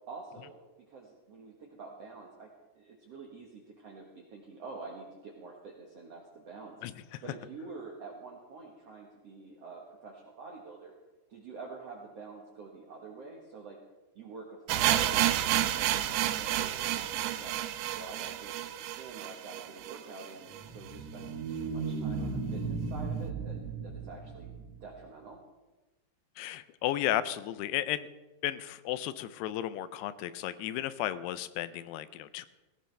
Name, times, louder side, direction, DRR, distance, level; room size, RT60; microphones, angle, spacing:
voice 1, 0.1-0.6 0.9-6.8 7.2-10.9 11.3-13.8 14.1-17.6 18.0-24.5 24.8-25.4, right 4 dB, 65° right, 0 dB, 1.5 m, -47 dB
voice 2, 6.8-7.2 26.4-28.1 28.4-32.5, left 13 dB, 85° left, 14 dB, 2.6 m, -34 dB
sound 1, 14.7-20.6 20.9-21.0 21.2-21.3 21.9-22.0, right 13 dB, 85° right, 2.6 m, -30 dB
sound 2, 20.5-25.0, right 4 dB, 45° right, 2.6 m, -36 dB
18.0 x 16.5 x 3.4 m, 1.1 s
omnidirectional pair, 4.7 m